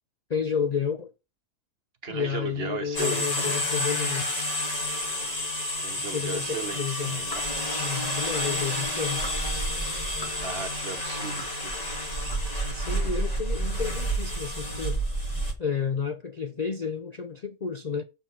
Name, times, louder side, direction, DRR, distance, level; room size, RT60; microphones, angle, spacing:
voice 1, 0.3-1.1 2.1-4.4 6.0-7.2 7.8-9.3 12.7-15.0 15.6-18.0, left 6 dB, 75° left, 0.3 m, -31 dB
voice 2, 2.0-3.6 5.8-7.4 10.4-11.8, right 4 dB, 45° right, 1.3 m, -36 dB
sound 1, 2.9-15.5, equal, 25° left, 1.7 m, -29 dB
8.0 x 4.5 x 5.8 m
omnidirectional pair, 1.6 m